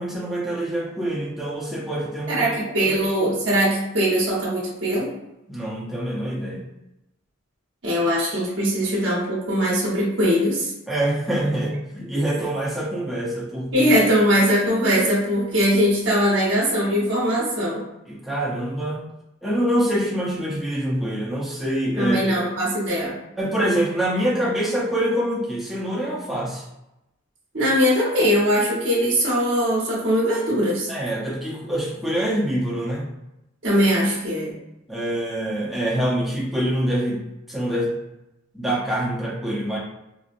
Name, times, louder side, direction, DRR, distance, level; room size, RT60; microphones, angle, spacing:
voice 1, 0.0-2.5 2.8-3.0 5.5-6.6 10.9-13.9 18.1-19.0 19.4-22.3 23.4-26.6 30.9-33.1 34.9-37.2 37.5-37.9 38.5-39.8, right 1 dB, ahead, -7 dB, 0.7 m, -25 dB
voice 2, 2.3-5.1 7.8-10.7 13.7-17.8 22.0-23.2 27.5-30.9 33.6-34.5, equal, 60° right, -6 dB, 1.1 m, -21 dB
4.0 x 2.1 x 2.5 m, 0.90 s
head